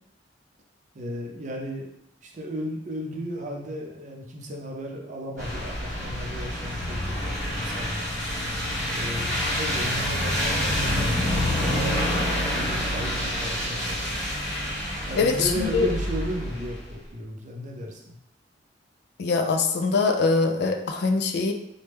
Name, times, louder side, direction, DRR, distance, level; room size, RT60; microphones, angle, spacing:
voice 1, 0.9-1.9 2.2-8.1 8.9-14.3 15.1-18.2, equal, 45° right, 0 dB, 0.5 m, -35 dB
sound 1, 5.4-16.9, equal, ahead, 1.5 m, -27 dB
voice 2, 15.2-15.9 19.2-21.5, left 4 dB, 60° left, 6 dB, 0.3 m, -23 dB
3.1 x 2.1 x 3.3 m, 0.79 s
head